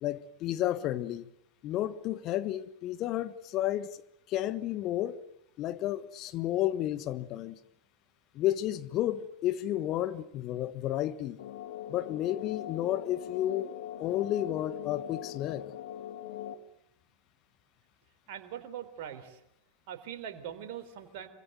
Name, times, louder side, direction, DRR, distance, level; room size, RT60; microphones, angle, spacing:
voice 1, 0.0-1.3 1.6-3.9 4.3-5.2 5.6-7.6 8.3-11.4 11.9-13.7 14.0-15.7, left 13 dB, 35° left, 1.4 m, -32 dB
sound 1, 11.4-16.5, left 11 dB, 55° left, 2.4 m, -41 dB
voice 2, 18.3-19.4 19.9-21.3, right 9 dB, 45° right, 3.8 m, -42 dB
25.5 x 25.0 x 9.2 m
figure-of-eight pair, 90°, 0 cm